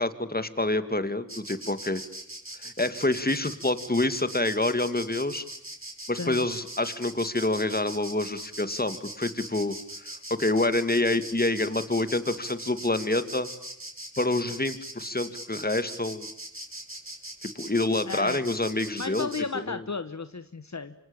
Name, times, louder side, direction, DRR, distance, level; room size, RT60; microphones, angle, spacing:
voice 1, 0.0-2.0 2.6-5.4 6.1-13.5 14.2-16.3 17.4-19.3 19.5-19.8, left 2 dB, 30° left, 11 dB, 2.4 m, -27 dB
Insect, 1.3-19.4, right 1 dB, 40° right, 6.5 m, -41 dB
voice 2, 18.1-18.4 19.0-20.9, left 4 dB, 60° left, 11 dB, 1.2 m, -33 dB
26.5 x 25.0 x 8.9 m, 0.74 s
wide cardioid pair, 45°, 32 cm